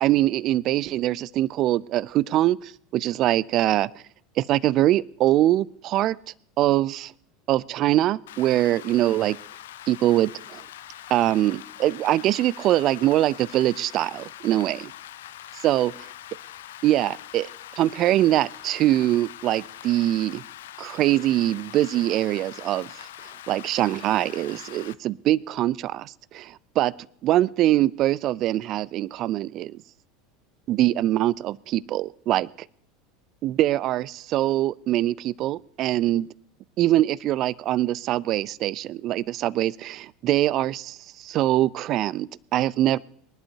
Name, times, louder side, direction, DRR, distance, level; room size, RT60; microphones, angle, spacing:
voice 1, 0.0-3.9 4.4-6.2 6.6-7.1 7.5-9.4 9.9-10.6 11.1-14.9 15.6-15.9 16.8-17.5 17.8-20.4 20.8-23.1 23.5-26.9 27.2-29.8 30.7-32.5 33.4-36.3 36.8-43.0, right 14 dB, 50° right, 23 dB, 0.4 m, -23 dB
Rain, 8.3-24.9, left 13 dB, 70° left, 0.5 m, -43 dB
24.0 x 11.5 x 2.8 m, 0.64 s
hypercardioid pair, 80°, 0 cm